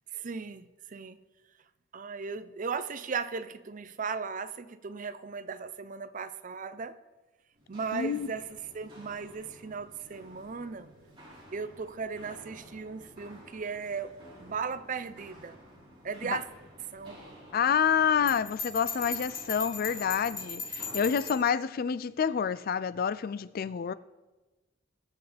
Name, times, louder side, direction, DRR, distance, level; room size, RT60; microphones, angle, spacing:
voice 1, 0.1-1.2 1.9-7.0 7.7-10.9 11.5-15.6 16.0-16.5 16.9-17.2, right 5 dB, 45° right, 0.5 m, -37 dB
Walk footsteps, 7.5-21.4, equal, 25° right, 3.9 m, -52 dB
voice 2, 7.9-8.3 16.2-16.4 17.5-23.9, left 7 dB, 50° left, 0.3 m, -28 dB
Bell, 18.3-21.5, left 4 dB, 25° left, 3.9 m, -38 dB
21.0 x 7.2 x 3.4 m
head